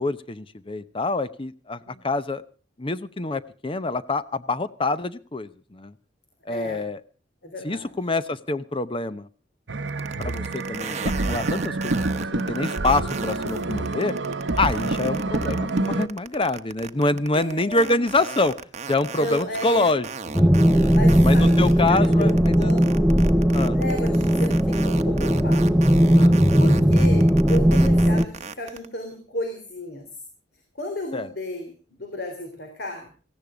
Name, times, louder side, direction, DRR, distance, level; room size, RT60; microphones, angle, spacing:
voice 1, 0.0-2.4 2.8-5.9 6.5-7.0 7.6-9.3 10.2-12.0 12.3-14.1 14.6-18.5 18.9-20.5 21.2-22.8 23.5-23.8 26.2-26.4 31.1-31.3, left 2 dB, 30° left, 14 dB, 0.8 m, -26 dB
voice 2, 6.5-6.9 7.4-7.9 17.3-18.1 19.2-20.0 20.9-23.1 23.7-25.7 26.6-30.1 30.8-33.1, left 1 dB, 60° left, 5 dB, 3.4 m, -33 dB
sound 1, 9.7-16.1, right 2 dB, 75° right, 0.9 m, -27 dB
sound 2, 9.9-28.8, right 5 dB, 40° right, 1.0 m, -35 dB
sound 3, 20.3-28.3, equal, 5° right, 0.8 m, -18 dB
18.0 x 15.5 x 5.1 m, 0.39 s
head